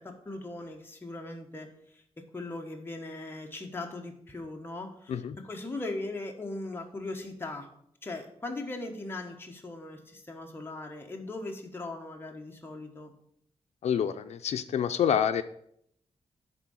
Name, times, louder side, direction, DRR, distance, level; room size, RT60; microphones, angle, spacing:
voice 1, 0.0-1.7 1.9-2.0 2.3-5.2 5.4-7.7 8.0-13.1, left 2 dB, 20° left, 2 dB, 1.2 m, -39 dB
voice 2, 13.8-15.4, left 8 dB, 85° left, 8 dB, 0.5 m, -27 dB
9.7 x 3.8 x 6.2 m, 0.69 s
wide cardioid pair, 145°, 11 cm